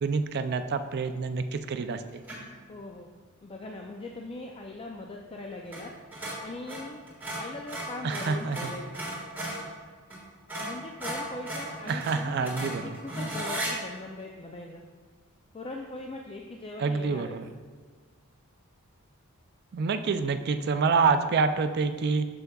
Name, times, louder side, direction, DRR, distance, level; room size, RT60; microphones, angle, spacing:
voice 1, 0.0-2.0 8.0-8.7 11.9-12.9 16.8-17.5 19.7-22.3, right 4 dB, 50° right, 9 dB, 0.3 m, -27 dB
sound 1, 2.2-2.6 5.7-5.9 6.1-9.7 10.1-10.2 10.5-13.7, right 1 dB, 10° right, 1.5 m, -35 dB
voice 2, 2.7-3.1 3.4-5.9 6.4-7.0 7.3-8.9 10.6-14.8 15.5-17.3, left 2 dB, 25° left, 1 dB, 0.3 m, -40 dB
7.9 x 6.9 x 2.3 m, 1.5 s
head